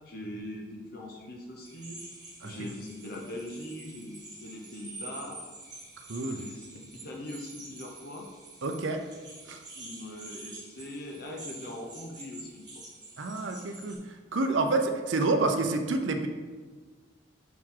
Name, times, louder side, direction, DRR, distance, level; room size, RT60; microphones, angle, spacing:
voice 1, 0.0-2.0 2.4-5.4 6.3-8.3 9.8-12.7, left 1 dB, 50° left, 0 dB, 0.7 m, -41 dB
sound 1, 1.6-14.0, right 2 dB, 20° right, 1.6 m, -47 dB
voice 2, 6.1-6.4 8.6-9.0 9.5-9.6 13.2-14.0 14.3-16.3, right 3 dB, 75° right, 5 dB, 0.6 m, -28 dB
5.8 x 4.7 x 3.7 m, 1.4 s
head